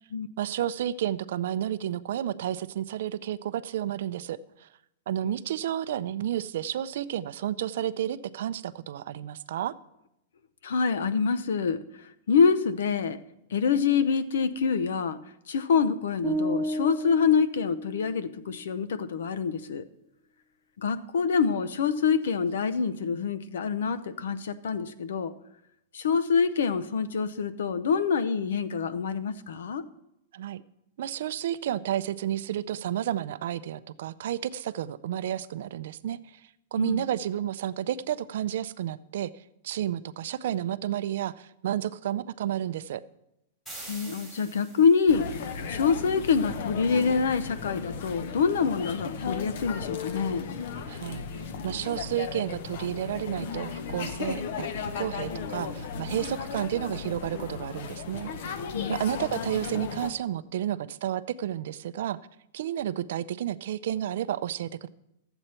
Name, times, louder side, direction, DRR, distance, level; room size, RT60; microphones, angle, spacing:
voice 1, 0.4-4.7 5.1-9.7 30.3-30.6 31.0-39.3 39.6-43.0 50.9-58.6 58.9-62.2 62.5-64.9, right 11 dB, 55° right, 15 dB, 0.4 m, -31 dB
voice 2, 10.6-13.2 13.5-15.2 15.5-19.8 20.8-25.3 25.9-29.8 36.8-37.0 43.9-50.6 58.7-59.0, left 5 dB, 85° left, 13 dB, 0.7 m, -26 dB
sound 1, 16.2-18.4, equal, 10° right, 0.9 m, -32 dB
sound 2, 43.7-45.2, right 2 dB, 5° left, 2.7 m, -44 dB
sound 3, 45.1-60.1, left 5 dB, 45° left, 0.8 m, -35 dB
13.5 x 7.9 x 4.3 m, 0.84 s
supercardioid pair, 180°, 0 cm